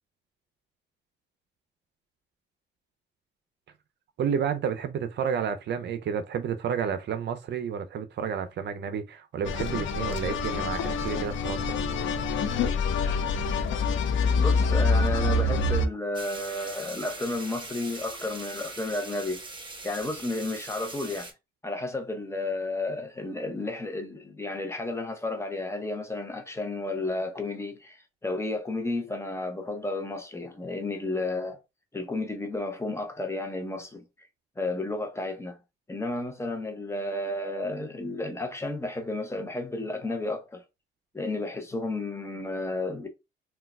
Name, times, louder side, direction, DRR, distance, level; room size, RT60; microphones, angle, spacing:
voice 1, 4.2-11.8, right 7 dB, 60° right, 0.5 m, -31 dB
sound 1, 9.5-15.9, left 3 dB, 75° left, 0.5 m, -26 dB
voice 2, 14.4-19.4 19.8-21.3 21.6-31.6 31.9-34.0 34.6-35.6 35.9-40.6 41.1-43.1, left 2 dB, 15° left, 0.7 m, -32 dB
sound 2, 16.1-21.3, right 3 dB, 25° right, 1.0 m, -41 dB
3.7 x 2.3 x 2.2 m
cardioid pair, 90°, 20 cm